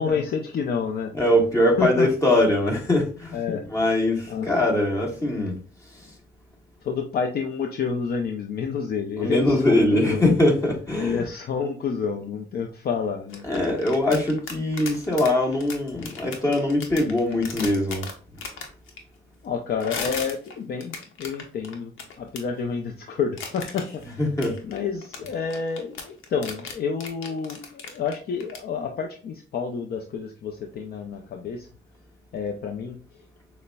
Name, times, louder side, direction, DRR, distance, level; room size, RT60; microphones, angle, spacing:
voice 1, 0.0-1.1 1.8-2.1 3.3-3.7 4.3-4.5 6.8-10.3 11.0-13.5 14.0-14.2 19.4-24.2 24.6-31.7 32.3-33.0, left 6 dB, 50° left, 0.5 m, -29 dB
voice 2, 1.1-3.4 3.7-5.6 5.9-6.1 9.2-11.2 13.4-18.0 24.2-24.6, left 1 dB, 15° left, 1.6 m, -22 dB
sound 1, 13.3-19.0 19.8-22.4 23.4-24.0 24.4-28.6, left 5 dB, 85° left, 0.8 m, -36 dB
6.4 x 2.1 x 2.2 m
cardioid pair, 90°, 20 cm